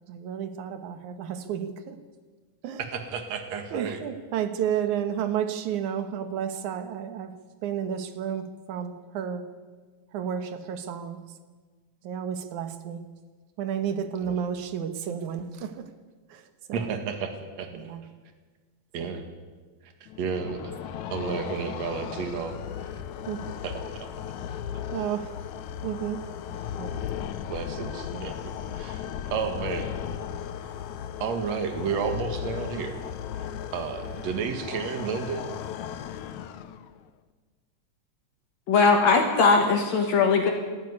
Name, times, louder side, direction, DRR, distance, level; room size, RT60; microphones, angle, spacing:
voice 1, 0.1-2.0 2.6-2.8 3.7-7.3 7.6-9.5 10.1-11.4 12.0-13.1 13.6-15.9 16.3-16.9 17.7-18.1 19.0-19.2 21.2-21.7 23.3-23.5 24.9-25.3 25.8-26.2 26.8-27.1 28.1-28.3, right 8 dB, 85° right, 10 dB, 2.7 m, -32 dB
voice 2, 2.9-4.0 16.7-17.3 17.6-17.7 18.9-19.2 19.8-20.7 21.1-22.6 22.8-22.9 23.6-24.1 27.5-28.4 28.7-29.9 31.2-33.0 33.7-35.4, right 6 dB, 65° right, 6 dB, 3.0 m, -31 dB
sound 1, 20.1-37.0, left 9 dB, 80° left, 2.3 m, -36 dB
voice 3, 38.7-40.5, left 4 dB, 65° left, 3 dB, 2.9 m, -20 dB
19.0 x 14.0 x 9.7 m, 1.4 s
omnidirectional pair, 3.4 m